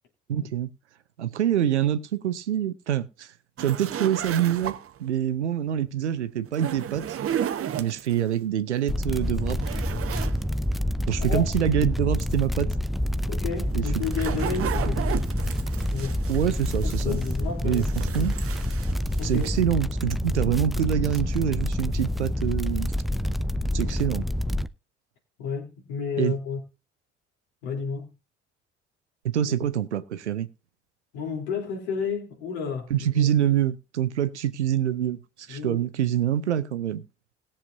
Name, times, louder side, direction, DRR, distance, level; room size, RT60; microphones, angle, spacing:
voice 1, 0.3-0.7 1.2-3.3 3.6-7.2 7.7-9.6 11.1-12.7 13.7-13.8 16.3-17.2 17.6-17.8 18.1-18.3 19.2-22.9 23.7-24.3 26.2-26.3 29.2-30.5 32.9-37.0, right 10 dB, 85° right, 0.7 m, -26 dB
sound 1, 3.6-5.1 6.5-8.2 8.8-8.9 9.2-10.4 10.7-10.8 13.6-17.4 17.7-19.5, right 10 dB, 40° right, 0.9 m, -34 dB
sound 2, 8.9-24.7, left 1 dB, ahead, 0.5 m, -27 dB
voice 2, 13.3-15.1 15.9-16.2 16.8-18.4 19.2-19.5 25.4-26.6 27.6-28.1 29.5-29.6 31.1-33.5 35.5-35.8, left 6 dB, 75° left, 3.3 m, -32 dB
20.0 x 7.2 x 2.6 m
figure-of-eight pair, 50°, 33 cm